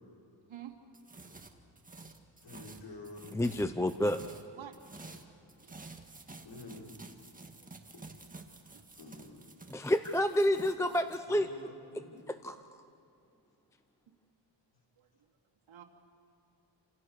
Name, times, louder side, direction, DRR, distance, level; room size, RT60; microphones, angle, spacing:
sound 1, 0.9-4.5 4.7-11.2, right 3 dB, 15° right, 1.8 m, -51 dB
voice 1, 2.4-3.3 6.4-6.9 7.9-8.0 8.9-9.5 11.3-12.2, left 3 dB, 65° left, -1 dB, 5.6 m, -49 dB
voice 2, 3.3-4.2 9.7-11.5 12.3-12.6, left 1 dB, 5° left, 9 dB, 0.6 m, -29 dB
voice 3, 5.6-5.9 8.7-8.8 15.0-15.3 15.7-15.8, right 12 dB, 80° right, 3 dB, 2.8 m, -49 dB
30.0 x 27.5 x 6.6 m, 2.8 s
wide cardioid pair, 140°, 47 cm